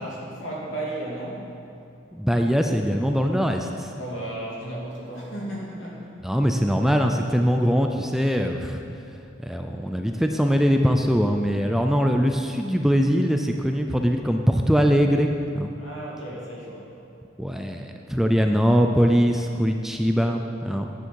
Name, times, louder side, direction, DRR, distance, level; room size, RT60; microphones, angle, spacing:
voice 1, 0.0-1.5 3.9-6.1 15.8-16.9, right 1 dB, 75° left, -5 dB, 2.7 m, -34 dB
voice 2, 2.1-3.9 6.2-8.8 9.4-15.3 15.6-15.7 17.4-20.9, equal, ahead, 4 dB, 0.4 m, -22 dB
10.5 x 9.9 x 4.6 m, 2.6 s
head